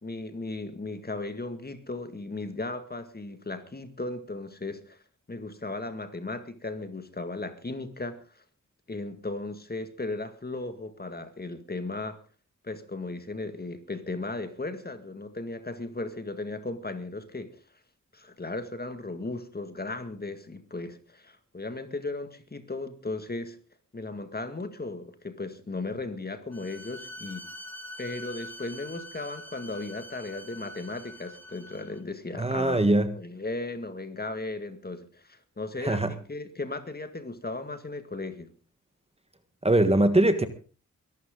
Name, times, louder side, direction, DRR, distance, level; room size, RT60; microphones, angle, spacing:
voice 1, 0.0-5.0 5.3-8.4 8.9-12.2 12.6-17.6 18.1-23.6 23.9-27.5 28.0-38.5, left 2 dB, 30° left, 2.0 m, -36 dB
Bowed string instrument, 26.5-32.0, left 1 dB, 5° left, 2.4 m, -44 dB
voice 2, 32.4-33.1 35.8-36.1 39.6-40.5, right 1 dB, 20° right, 1.5 m, -21 dB
23.0 x 12.0 x 3.8 m
wide cardioid pair, 100°, 31 cm